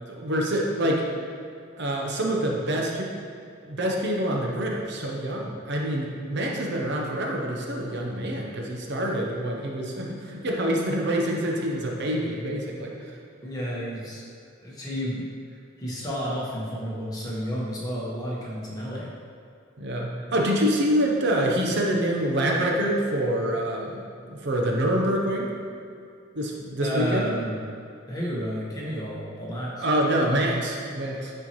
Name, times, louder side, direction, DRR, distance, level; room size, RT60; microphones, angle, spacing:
voice 1, 0.1-1.0 1.8-3.1 3.7-13.1 19.8-25.5 26.3-27.3 29.8-31.3, right 1 dB, 60° right, -1 dB, 0.8 m, -26 dB
voice 2, 13.4-14.2 14.6-15.3 15.8-19.1 26.8-27.6 28.1-29.8, equal, 20° left, -6 dB, 1.4 m, -31 dB
10.0 x 4.5 x 3.1 m, 2.4 s
head